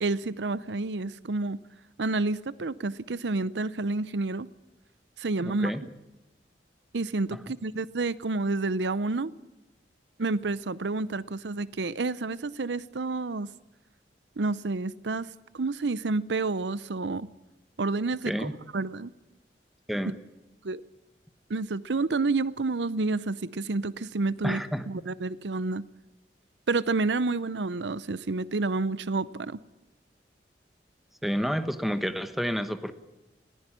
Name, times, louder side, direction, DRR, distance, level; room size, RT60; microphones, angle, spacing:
voice 1, 0.0-1.6 2.0-4.5 5.2-5.7 6.9-9.3 10.2-13.5 14.4-15.3 15.5-17.3 17.8-19.1 20.6-20.8 21.5-24.6 24.9-25.8 26.7-29.6, right 3 dB, 80° right, 18 dB, 0.7 m, -29 dB
voice 2, 5.4-5.8 18.3-18.5 19.9-20.1 24.4-24.9 31.2-32.9, equal, ahead, 11 dB, 1.2 m, -29 dB
20.5 x 16.0 x 10.0 m, 1.0 s
head